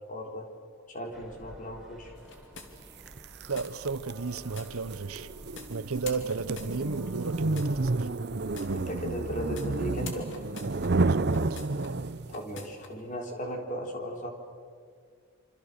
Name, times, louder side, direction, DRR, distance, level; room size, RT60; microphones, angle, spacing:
voice 1, 0.1-0.4 0.9-2.1 8.7-10.3 12.3-14.3, equal, 35° left, 3.7 m, -36 dB
sound 1, 1.1-9.5, equal, ahead, 4.0 m, -50 dB
sound 2, 2.2-3.1 3.6-3.7 4.6-4.7 5.6-5.7 6.0-7.1 7.6-7.7 8.6-8.7 9.6-9.7 10.0-11.9 12.3-12.9, left 4 dB, 55° left, 3.1 m, -45 dB
sound 3, 3.1-12.4, right 3 dB, 50° right, 0.7 m, -31 dB
voice 2, 3.5-5.3 5.7-8.1 11.0-11.6, right 4 dB, 85° right, 1.0 m, -34 dB
27.0 x 27.0 x 6.8 m
head